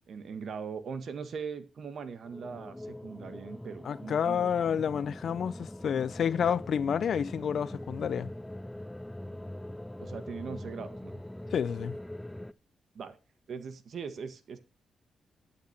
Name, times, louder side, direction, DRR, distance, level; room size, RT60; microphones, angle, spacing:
voice 1, 0.1-4.5 10.0-11.2 12.9-13.2 13.5-14.6, right 6 dB, 65° right, 1.6 m, -40 dB
sound 1, 2.2-12.5, left 1 dB, 10° left, 0.5 m, -42 dB
voice 2, 3.8-8.3 11.5-12.0, left 7 dB, 70° left, 0.6 m, -29 dB
11.5 x 6.1 x 6.0 m
cardioid pair, 60°, 0 cm